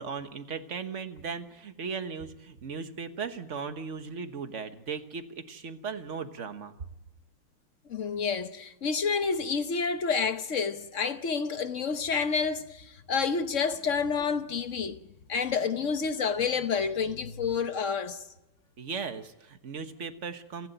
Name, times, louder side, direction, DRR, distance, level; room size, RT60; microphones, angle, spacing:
voice 1, 0.0-6.8 18.8-20.7, right 5 dB, 40° right, 1.3 m, -37 dB
voice 2, 7.9-15.0 15.3-18.2, left 5 dB, 45° left, 1.0 m, -29 dB
28.5 x 11.0 x 9.2 m
omnidirectional pair, 2.4 m